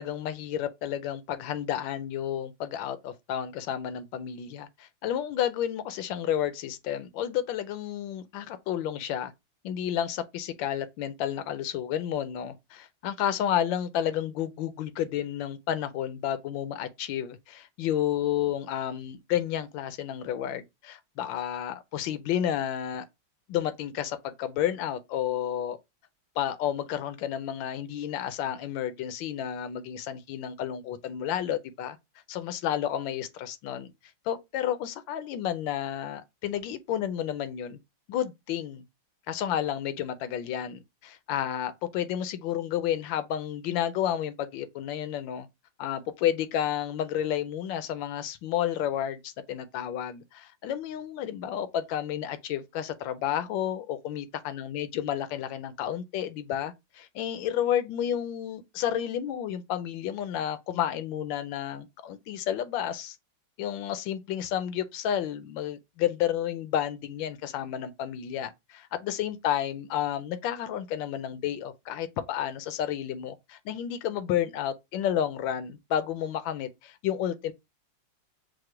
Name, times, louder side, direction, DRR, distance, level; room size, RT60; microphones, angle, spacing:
voice 1, 0.0-9.3 9.6-23.0 23.5-25.8 26.4-32.0 32.3-33.9 34.3-37.8 38.1-38.8 39.3-45.5 45.8-63.2 63.6-77.5, left 10 dB, 75° left, 1.2 m, -31 dB
4.8 x 2.0 x 4.3 m
omnidirectional pair, 2.2 m